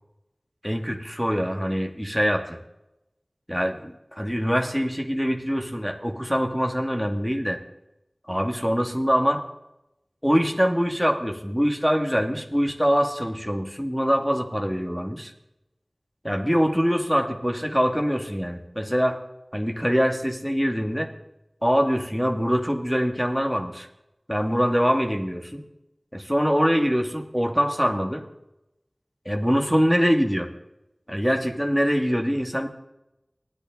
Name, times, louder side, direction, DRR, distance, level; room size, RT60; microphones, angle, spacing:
voice 1, 0.6-2.6 3.5-7.6 8.3-9.4 10.2-15.3 16.2-19.2 19.5-21.1 21.6-23.9 24.3-25.6 26.1-28.2 29.2-30.5 31.1-32.7, equal, ahead, 3 dB, 2.6 m, -24 dB
29.5 x 10.5 x 4.0 m, 0.90 s
wide cardioid pair, 40°, 0 cm